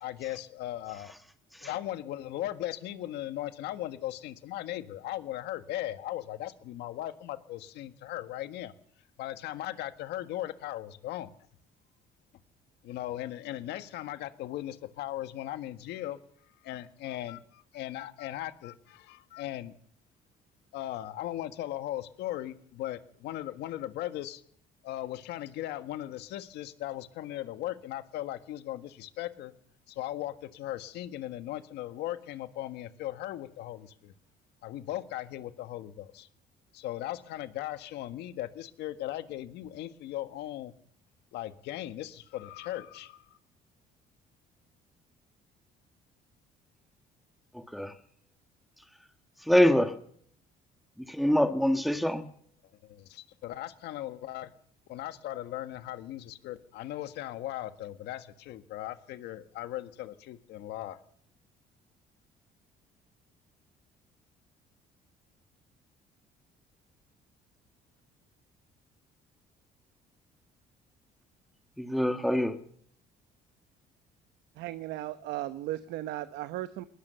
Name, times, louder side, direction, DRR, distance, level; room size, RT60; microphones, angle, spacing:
voice 1, 0.0-1.1 1.6-8.7 9.2-11.3 12.8-16.2 16.6-19.7 20.7-24.4 24.8-29.5 29.9-34.1 34.6-36.3 36.7-40.7 41.3-43.4 52.8-54.5 54.9-61.0, left 13 dB, 85° left, 10 dB, 1.6 m, -38 dB
voice 2, 47.5-47.9 49.5-49.9 51.1-52.3 71.8-72.6, equal, ahead, 7 dB, 1.5 m, -25 dB
voice 3, 74.6-76.9, right 14 dB, 85° right, 12 dB, 0.9 m, -36 dB
20.5 x 19.5 x 6.9 m, 0.62 s
cardioid pair, 110°, 17 cm